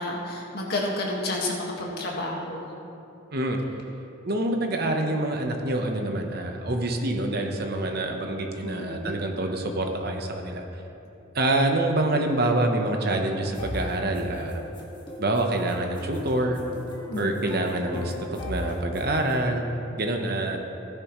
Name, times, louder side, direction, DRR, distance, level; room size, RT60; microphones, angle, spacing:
voice 1, 0.0-2.7 8.6-9.1 17.1-17.3, left 2 dB, 50° left, -2 dB, 1.7 m, -30 dB
voice 2, 4.2-10.6 11.3-14.6 15.2-16.6 17.2-18.1 18.5-19.6 20.0-20.6, right 1 dB, 50° right, 3 dB, 1.0 m, -26 dB
sound 1, 13.4-19.5, left 1 dB, 25° left, 1.7 m, -38 dB
15.5 x 10.5 x 3.1 m, 2.8 s
head